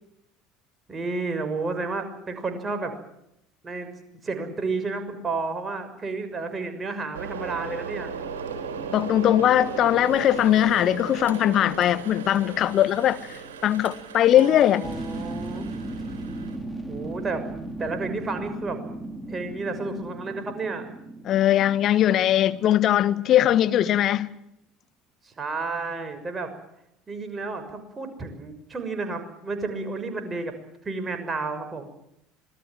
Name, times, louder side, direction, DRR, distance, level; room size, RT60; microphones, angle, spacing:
voice 1, 0.9-2.9 3.6-3.9 4.2-8.1 14.3-15.7 16.9-17.4 17.8-18.8 19.3-20.9 25.2-26.5 27.1-30.5 30.8-31.9, right 3 dB, 25° right, 6.3 m, -31 dB
sound 1, 7.1-16.6, right 6 dB, 70° right, 4.1 m, -36 dB
voice 2, 8.9-13.2 13.6-14.9 21.2-24.3, left 11 dB, 45° left, 1.4 m, -20 dB
sound 2, 14.8-23.3 23.6-23.7, right 2 dB, 5° right, 4.4 m, -36 dB
26.5 x 20.0 x 7.6 m
figure-of-eight pair, 65°, 0 cm